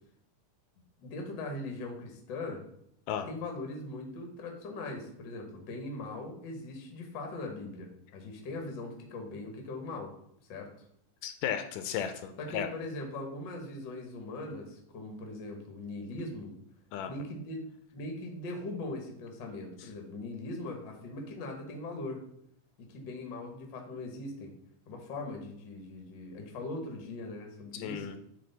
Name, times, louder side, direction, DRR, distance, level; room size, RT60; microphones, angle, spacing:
voice 1, 1.0-2.6 3.3-10.1 10.5-10.7 12.4-16.5 17.1-17.6 17.9-22.2 22.8-24.5 24.9-28.2, left 2 dB, 60° left, 2 dB, 1.2 m, -40 dB
voice 2, 11.2-12.7 16.9-17.1 27.7-28.2, left 9 dB, 80° left, 8 dB, 2.0 m, -34 dB
7.7 x 3.5 x 3.9 m, 0.71 s
omnidirectional pair, 3.8 m